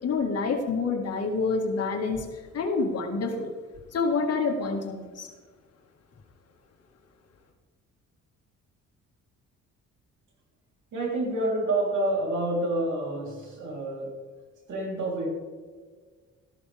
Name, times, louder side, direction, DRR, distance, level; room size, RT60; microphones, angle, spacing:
voice 1, 0.0-3.5 3.9-5.3, left 4 dB, 55° left, 2 dB, 2.0 m, -27 dB
voice 2, 10.9-14.1 14.7-15.3, right 1 dB, 75° right, -1 dB, 3.7 m, -28 dB
13.5 x 12.5 x 3.5 m, 1.5 s
cardioid pair, 90°, 30 cm